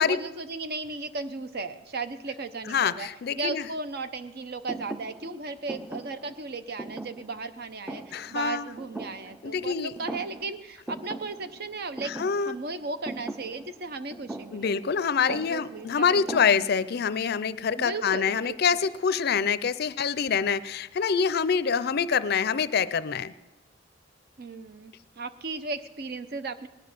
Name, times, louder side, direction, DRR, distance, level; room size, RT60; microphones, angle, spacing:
voice 1, 0.0-3.1 3.3-12.1 12.4-14.7 15.3-16.6 17.7-18.6 24.4-26.7, right 3 dB, 55° right, 11 dB, 0.8 m, -36 dB
voice 2, 2.7-3.7 8.1-8.7 9.4-9.9 12.1-12.5 14.5-23.3, left 6 dB, 55° left, 16 dB, 0.5 m, -26 dB
Thump thud, 4.7-9.7 10.0-10.6 10.9-17.0, right 2 dB, 5° right, 0.5 m, -41 dB
19.0 x 10.0 x 6.7 m, 1.1 s
head